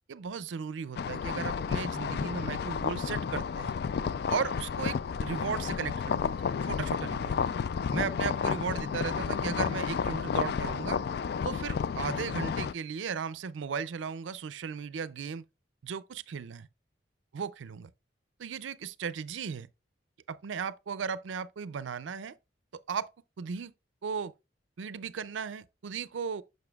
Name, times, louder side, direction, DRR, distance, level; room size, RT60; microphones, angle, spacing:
voice 1, 0.1-3.7 4.3-6.3 6.6-7.4 7.9-11.0 11.4-15.4 15.8-16.7 17.3-17.9 18.4-19.7 20.3-22.4 22.9-23.1 23.4-23.7 24.0-24.3 24.8-26.4, right 6 dB, 85° right, 0.4 m, -36 dB
sound 1, 1.0-12.7, left 6 dB, 55° left, 0.3 m, -31 dB
6.8 x 6.4 x 2.3 m
head